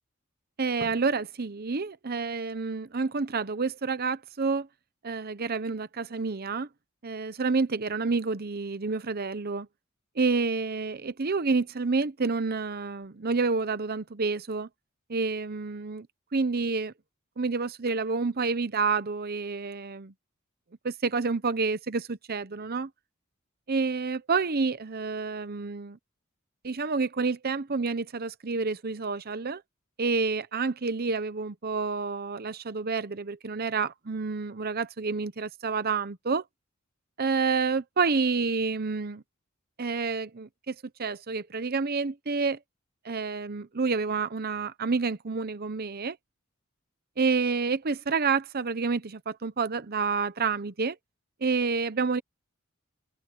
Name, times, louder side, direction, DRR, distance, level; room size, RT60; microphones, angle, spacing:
voice 1, 0.6-4.7 5.0-6.7 7.0-9.7 10.2-14.7 15.1-16.1 16.3-16.9 17.4-20.1 20.8-22.9 23.7-26.0 26.6-29.6 30.0-36.4 37.2-39.2 39.8-42.6 43.0-46.2 47.2-51.0 51.4-52.2, right 4 dB, 50° right, 0.9 m, -29 dB
head